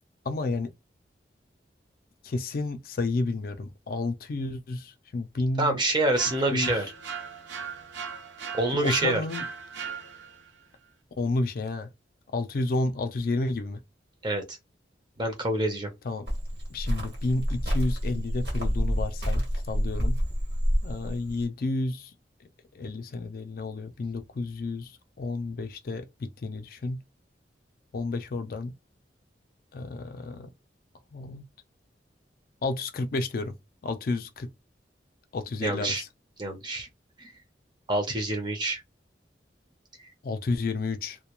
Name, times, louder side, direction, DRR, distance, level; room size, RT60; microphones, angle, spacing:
voice 1, 0.2-0.7 2.2-5.8 6.5-6.8 8.8-9.4 11.2-11.9 12.3-13.8 16.0-16.3 16.7-20.2 20.8-22.1 22.7-27.0 27.9-28.7 29.7-30.5 31.1-31.4 32.6-33.5 33.8-34.5 35.3-36.1 40.2-41.2, left 3 dB, 55° left, 0.4 m, -31 dB
voice 2, 5.6-6.9 8.5-9.2 14.2-14.6 15.2-15.9 35.6-36.0 36.4-36.9 37.2-37.3 37.9-38.8, right 2 dB, 25° right, 0.6 m, -27 dB
sound 1, 6.1-10.5, right 6 dB, 80° right, 0.5 m, -38 dB
Cricket, 16.3-21.4, equal, 60° right, 1.1 m, -28 dB
2.2 x 2.1 x 2.9 m
head